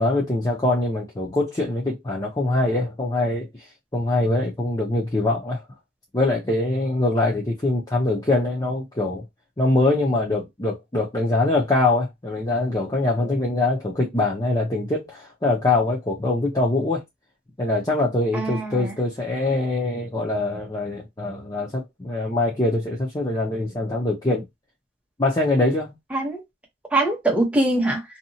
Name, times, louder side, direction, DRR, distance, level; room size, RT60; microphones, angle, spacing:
voice 1, 0.0-3.5 3.9-5.6 6.1-9.2 9.6-17.0 17.6-24.4 25.2-25.9, left 2 dB, 20° left, 0.6 m, -23 dB
voice 2, 18.3-18.9 26.1-26.4 26.9-28.0, right 2 dB, 5° right, 0.9 m, -22 dB
2.7 x 2.3 x 2.8 m
head